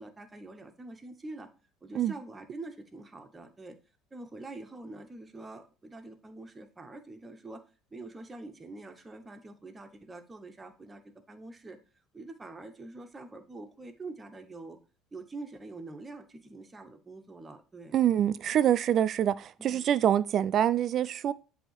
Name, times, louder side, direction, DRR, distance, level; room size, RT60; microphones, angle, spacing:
voice 1, 0.0-1.5 1.8-3.8 4.1-7.6 7.9-11.0 11.3-11.8 12.1-14.8 15.1-18.0 19.6-19.9, right 2 dB, 20° right, 0.9 m, -45 dB
voice 2, 17.9-21.3, right 10 dB, 50° right, 0.3 m, -25 dB
7.6 x 2.8 x 4.6 m
supercardioid pair, 90°, 0 cm